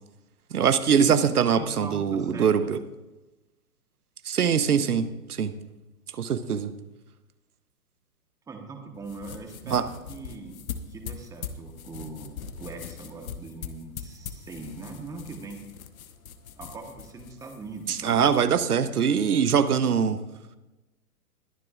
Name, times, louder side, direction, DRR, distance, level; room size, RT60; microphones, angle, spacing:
voice 1, 0.5-2.8 4.2-5.5 6.2-6.7 9.7-9.9 17.9-20.2, right 7 dB, 80° right, 12 dB, 1.0 m, -23 dB
voice 2, 1.5-2.7 8.5-10.6 10.9-15.6 16.6-18.2, right 3 dB, 5° right, 4 dB, 1.1 m, -41 dB
sound 1, 9.0-18.6, left 7 dB, 65° left, 1.2 m, -41 dB
21.5 x 10.5 x 2.4 m, 1.0 s
hypercardioid pair, 130°, 45 cm